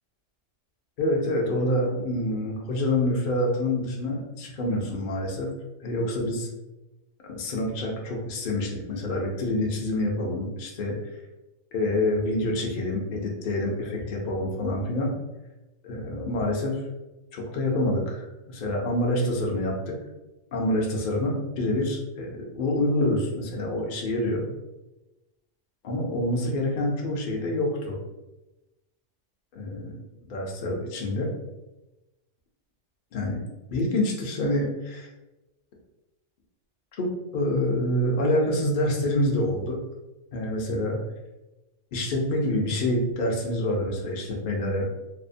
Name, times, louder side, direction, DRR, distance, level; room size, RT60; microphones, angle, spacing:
voice 1, 1.0-5.5 5.8-6.5 7.2-11.0 11.7-15.1 15.8-16.8 17.3-19.9 20.5-24.4 25.8-28.0 29.5-29.9 30.3-31.3 33.1-33.4 33.7-35.1 37.0-39.8 40.3-41.0 41.9-44.9, left 1 dB, 55° left, -1 dB, 0.6 m, -27 dB
2.7 x 2.1 x 2.5 m, 1.0 s
omnidirectional pair, 1.3 m